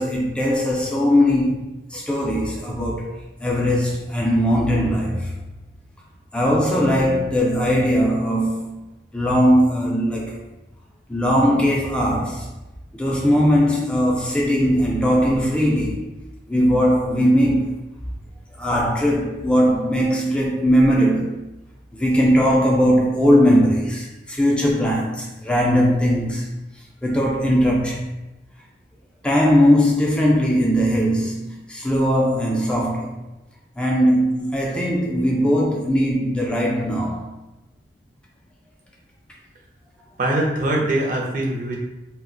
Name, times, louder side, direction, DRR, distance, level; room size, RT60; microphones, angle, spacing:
voice 1, 0.0-5.3 6.3-8.8 9.1-10.4 11.1-12.5 12.9-16.1 16.5-17.7 18.6-21.5 21.9-26.5 27.0-28.1 29.2-33.2 33.8-37.3, equal, 5° left, 0.3 m, -19 dB
voice 2, 40.2-41.8, right 1 dB, 50° right, 0.6 m, -22 dB
2.3 x 2.2 x 3.6 m
head